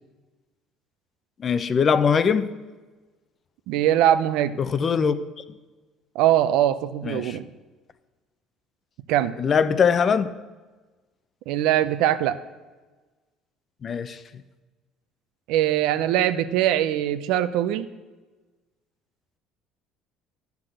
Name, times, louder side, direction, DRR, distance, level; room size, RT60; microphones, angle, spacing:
voice 1, 1.4-2.5 4.6-5.1 7.0-7.4 9.4-10.3 13.8-14.2, left 6 dB, 35° left, 14 dB, 0.6 m, -21 dB
voice 2, 3.7-4.6 6.1-7.4 9.1-9.3 11.5-12.4 15.5-17.9, right 12 dB, 80° right, 13 dB, 0.6 m, -22 dB
11.5 x 5.9 x 7.8 m, 1.2 s
cardioid pair, 120°, 0 cm